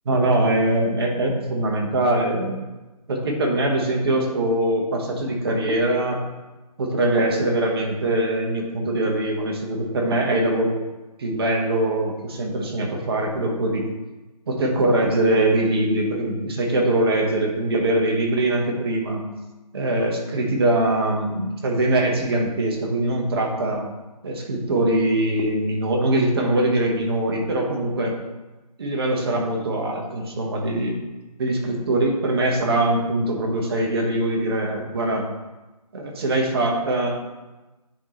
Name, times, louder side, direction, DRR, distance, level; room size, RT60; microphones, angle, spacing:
voice 1, 0.1-2.6 3.1-6.2 6.8-10.8 11.2-13.9 14.5-19.3 19.7-23.8 24.2-28.1 28.8-31.0 31.4-35.2 35.9-37.2, right 1 dB, 35° right, 0 dB, 1.2 m, -22 dB
10.0 x 3.9 x 3.1 m, 1.1 s
figure-of-eight pair, 150°, 21 cm